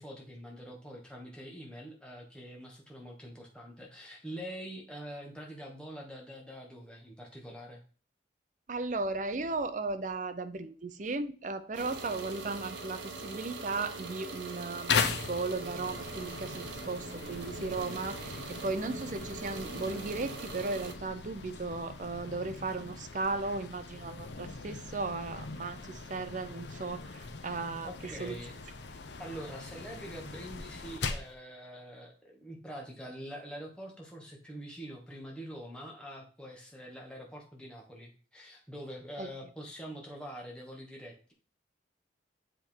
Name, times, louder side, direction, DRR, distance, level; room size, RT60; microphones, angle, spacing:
voice 1, 0.0-7.8 27.4-27.5 27.8-28.6 28.8-41.3, equal, 5° left, 1.3 m, -45 dB
voice 2, 8.7-28.4 39.2-39.3, right 3 dB, 40° right, 0.5 m, -36 dB
sound 1, 11.7-20.9, right 3 dB, 70° right, 1.0 m, -42 dB
sound 2, 14.9-31.4, left 5 dB, 65° left, 0.7 m, -39 dB
7.5 x 3.5 x 4.5 m
head